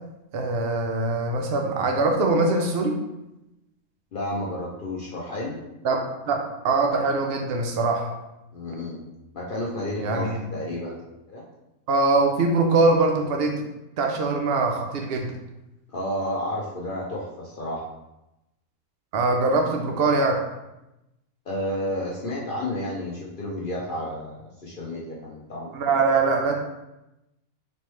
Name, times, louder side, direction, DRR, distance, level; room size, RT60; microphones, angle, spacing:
voice 1, 0.3-3.0 5.8-8.1 10.0-10.4 11.9-13.6 14.0-15.3 19.1-20.4 25.7-26.5, right 3 dB, 80° right, 3 dB, 0.5 m, -22 dB
voice 2, 4.1-5.6 8.5-9.0 9.3-10.9 11.3-11.4 15.9-17.8 21.5-25.9, left 1 dB, 60° left, -4 dB, 0.5 m, -31 dB
4.4 x 2.9 x 3.1 m, 0.93 s
omnidirectional pair, 1.6 m